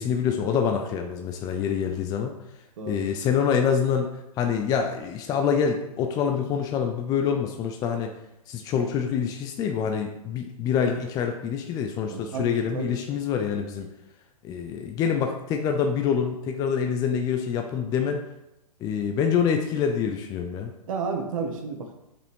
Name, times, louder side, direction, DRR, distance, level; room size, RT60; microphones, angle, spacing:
voice 1, 0.0-2.3 2.9-8.1 8.5-13.9 14.4-18.2 18.8-20.7, left 7 dB, 20° left, 4 dB, 0.5 m, -26 dB
voice 2, 12.0-12.9 14.6-14.7 20.9-21.9, right 5 dB, 60° right, 4 dB, 1.4 m, -32 dB
6.7 x 5.2 x 3.6 m, 0.90 s
hypercardioid pair, 135°, 20 cm